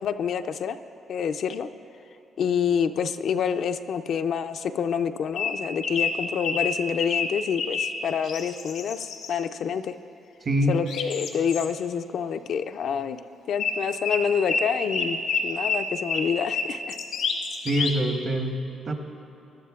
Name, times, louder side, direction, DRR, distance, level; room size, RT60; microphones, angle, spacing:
voice 1, 0.0-0.8 1.1-1.7 2.4-9.9 10.7-13.2 13.5-17.0, left 7 dB, 65° left, 8 dB, 0.4 m, -27 dB
sound 1, 5.3-8.0 8.2-9.3 10.9-11.7 13.6-13.8 14.0-18.0, left 5 dB, 90° left, 1.1 m, -28 dB
voice 2, 10.5-10.8 17.6-18.6 18.9-19.0, equal, 45° right, 5 dB, 1.0 m, -24 dB
18.5 x 12.0 x 2.4 m, 3.0 s
cardioid pair, 90°, 0 cm